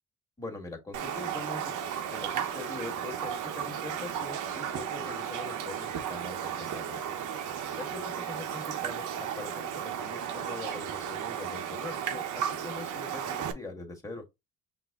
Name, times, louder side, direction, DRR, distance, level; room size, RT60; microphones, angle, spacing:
voice 1, 0.4-1.8 2.1-7.0 7.8-14.2, left 3 dB, 10° left, 1.5 m, -42 dB
Raindrop, 0.9-13.5, right 8 dB, 85° right, 0.8 m, -34 dB
5.9 x 2.1 x 3.5 m
cardioid pair, 90°, 30 cm